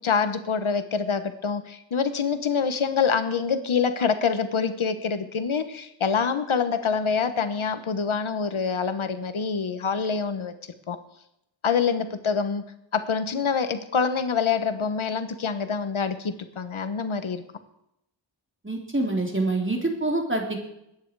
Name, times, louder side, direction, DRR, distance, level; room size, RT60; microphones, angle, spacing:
voice 1, 0.0-10.5 10.9-11.0 11.6-12.6 12.9-17.4, left 6 dB, 80° left, 10 dB, 1.2 m, -26 dB
voice 2, 18.6-20.6, right 2 dB, 25° right, 1 dB, 3.6 m, -26 dB
21.0 x 9.7 x 4.8 m, 0.79 s
wide cardioid pair, 85°, 47 cm